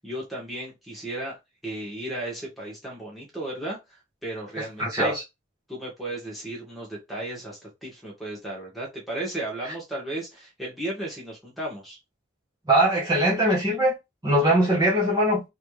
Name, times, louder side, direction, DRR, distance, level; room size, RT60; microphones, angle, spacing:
voice 1, 0.0-1.4 1.6-5.1 5.7-12.0, right 1 dB, ahead, 1.6 m, -34 dB
voice 2, 4.6-5.2 12.7-14.0 14.2-15.4, right 1 dB, 20° right, 1.1 m, -21 dB
3.5 x 3.4 x 3.2 m
head